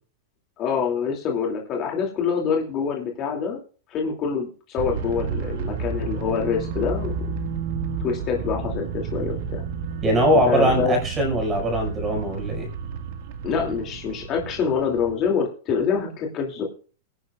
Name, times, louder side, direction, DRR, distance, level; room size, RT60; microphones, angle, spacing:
voice 1, 0.6-3.6 3.9-7.1 8.0-9.6 10.3-11.0 13.4-16.6, left 6 dB, 30° left, 0 dB, 2.7 m, -25 dB
sound 1, 4.8-15.1, right 6 dB, 55° right, 1.8 m, -31 dB
voice 2, 10.0-12.7, equal, 15° right, 3 dB, 5.6 m, -21 dB
21.5 x 10.5 x 2.4 m, 0.39 s
supercardioid pair, 160°, 0 cm